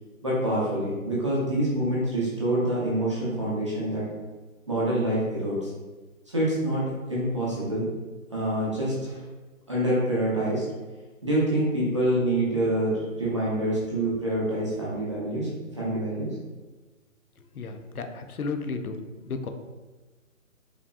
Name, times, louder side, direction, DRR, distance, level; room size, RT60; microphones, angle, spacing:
voice 1, 0.2-4.1 4.7-5.7 6.3-7.9 8.3-9.2 9.7-10.6 11.2-16.3, right 1 dB, 20° right, -8 dB, 0.6 m, -26 dB
voice 2, 17.5-19.0 19.2-19.5, left 4 dB, 85° left, 6 dB, 0.7 m, -33 dB
4.9 x 2.9 x 2.4 m, 1.2 s
hypercardioid pair, 160°, 43 cm